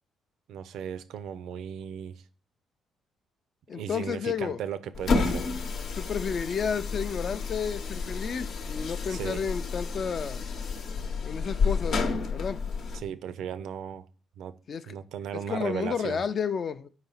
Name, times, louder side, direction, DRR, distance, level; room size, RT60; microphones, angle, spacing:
voice 1, 0.5-2.2 3.7-5.5 9.1-9.4 12.9-14.1 14.4-14.5 14.9-16.2, right 8 dB, 80° right, 0.4 m, -36 dB
voice 2, 3.7-4.6 6.0-10.4 11.2-12.6 14.7-14.9 15.3-16.9, left 6 dB, 50° left, 0.4 m, -32 dB
sound 1, 4.9-13.0, left 4 dB, 70° left, 0.8 m, -30 dB
4.8 x 4.0 x 5.5 m
cardioid pair, 90°, 0 cm